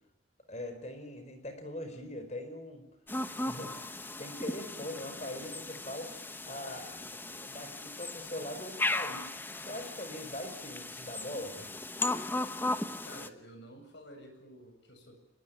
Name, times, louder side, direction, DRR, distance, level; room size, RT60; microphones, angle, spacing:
voice 1, 0.5-2.8 3.5-9.3 9.6-11.8, left 1 dB, 35° left, 8 dB, 4.8 m, -42 dB
sound 1, 3.1-13.3, left 2 dB, 10° left, 1.1 m, -37 dB
voice 2, 13.1-15.1, equal, 65° left, 6 dB, 7.6 m, -51 dB
25.0 x 22.0 x 9.3 m, 0.87 s
head